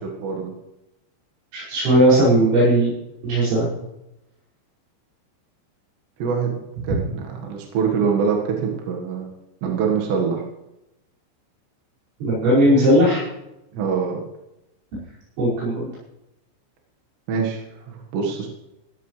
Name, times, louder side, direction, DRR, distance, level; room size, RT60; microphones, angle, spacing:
voice 1, 0.0-0.5 6.2-6.6 6.8-9.3 9.6-10.4 13.7-14.2 17.3-18.5, right 6 dB, 70° right, 0 dB, 3.8 m, -24 dB
voice 2, 1.5-2.9 3.2-3.7 12.2-13.2 15.4-15.9, right 1 dB, 85° right, -10 dB, 8.0 m, -17 dB
16.0 x 15.0 x 3.3 m, 0.90 s
omnidirectional pair, 5.3 m